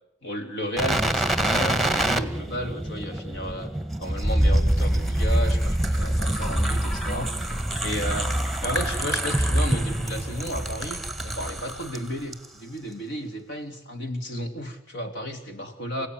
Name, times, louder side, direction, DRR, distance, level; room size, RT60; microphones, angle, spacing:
voice 1, 0.2-3.7 4.0-7.3 7.8-16.1, equal, 60° left, 6 dB, 3.7 m, -33 dB
sound 1, 0.8-12.0 12.3-12.5, right 1 dB, ahead, 1.6 m, -25 dB
30.0 x 17.0 x 9.8 m, 0.79 s
head